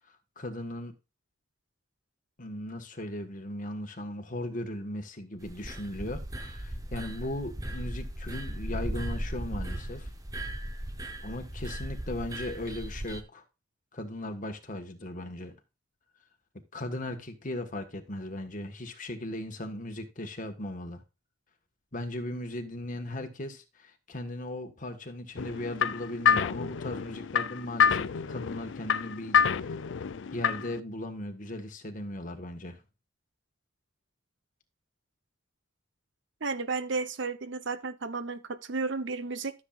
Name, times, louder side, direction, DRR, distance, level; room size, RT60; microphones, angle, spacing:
voice 1, 0.4-0.9 2.4-10.1 11.2-13.4 13.9-15.5 16.7-21.0 21.9-29.8 30.3-32.8, left 1 dB, 40° left, 1.5 m, -37 dB
sound 1, 5.4-13.2, right 1 dB, 15° right, 0.9 m, -37 dB
sound 2, 25.4-30.8, left 7 dB, 60° left, 0.4 m, -28 dB
voice 2, 36.4-39.5, right 4 dB, 60° right, 0.9 m, -33 dB
13.5 x 7.2 x 2.5 m
head